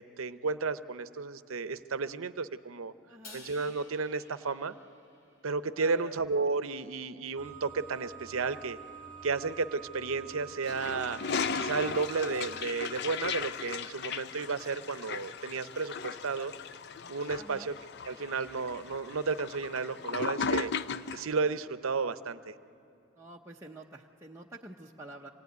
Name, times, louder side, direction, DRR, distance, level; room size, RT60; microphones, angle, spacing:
voice 1, 0.0-2.9 3.3-4.7 5.4-8.8 9.2-11.2 11.5-16.5 17.1-17.7 18.0-20.7 21.1-22.5, right 4 dB, 90° right, 12 dB, 0.7 m, -33 dB
voice 2, 3.1-3.5 5.8-6.2 17.3-17.7 23.2-25.3, right 2 dB, 15° right, -2 dB, 0.7 m, -48 dB
Crash cymbal, 3.2-5.6, left 3 dB, 75° left, 2.8 m, -53 dB
sound 1, 7.4-12.6, right 5 dB, 5° left, 2.5 m, -47 dB
Toilet flush, 10.6-21.3, left 5 dB, 55° left, 0.5 m, -37 dB
25.5 x 18.5 x 9.4 m, 2.5 s
head